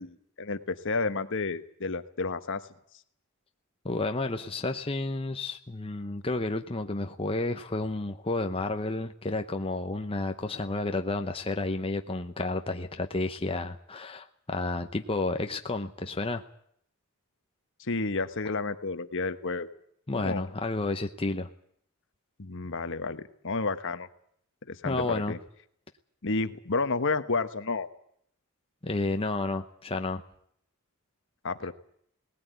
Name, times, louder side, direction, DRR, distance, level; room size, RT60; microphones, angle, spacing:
voice 1, 0.0-2.6 17.8-19.7 20.2-20.5 22.4-24.1 24.7-25.4 26.2-27.9 31.4-31.7, left 3 dB, 55° left, 11 dB, 1.2 m, -31 dB
voice 2, 3.8-16.4 20.1-21.5 24.8-25.3 28.8-30.2, left 2 dB, 25° left, 6 dB, 0.9 m, -31 dB
19.0 x 17.0 x 9.4 m, 0.66 s
head